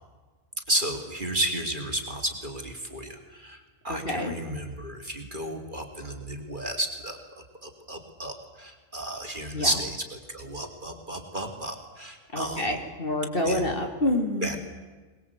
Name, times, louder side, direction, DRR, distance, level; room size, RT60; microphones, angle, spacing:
voice 1, 0.7-12.7 13.4-13.7 14.4-14.6, right 1 dB, 35° right, 3 dB, 2.8 m, -32 dB
voice 2, 3.9-4.3 9.5-9.7 12.3-14.6, left 1 dB, 35° left, 3 dB, 2.9 m, -27 dB
22.5 x 21.5 x 8.3 m, 1.3 s
omnidirectional pair, 1.5 m